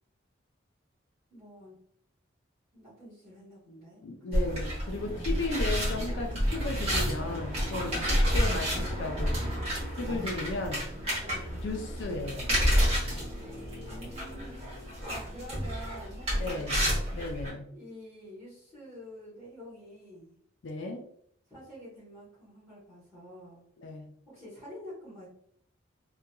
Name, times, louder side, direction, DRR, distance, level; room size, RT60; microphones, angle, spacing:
voice 1, 1.3-1.8 2.7-4.6 7.8-8.3 11.1-11.5 13.4-14.6 15.0-17.1 17.7-20.3 21.5-23.6 24.2-25.3, equal, 5° left, -14 dB, 1.2 m, -48 dB
voice 2, 4.0-9.4 10.0-10.9 11.6-12.5 16.4-16.8 17.1-17.7 20.6-21.0 23.8-24.1, left 2 dB, 70° left, 3 dB, 0.4 m, -35 dB
sound 1, 4.3-17.5, equal, 30° right, 1.0 m, -30 dB
2.8 x 2.5 x 2.2 m, 0.67 s
head